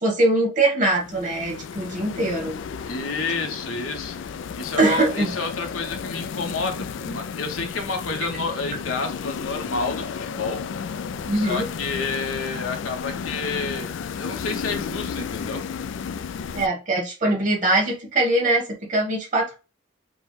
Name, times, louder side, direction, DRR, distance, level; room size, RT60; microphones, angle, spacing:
voice 1, 0.0-2.5 4.8-5.3 11.3-11.7 16.5-19.5, right 2 dB, 40° right, 0 dB, 1.5 m, -22 dB
sound 1, 1.0-16.7, left 6 dB, 70° left, 0.3 m, -33 dB
voice 2, 2.9-10.6 11.3-13.9 14.2-15.6, left 4 dB, 90° left, 4 dB, 1.0 m, -30 dB
5.2 x 2.2 x 3.2 m, 0.31 s
head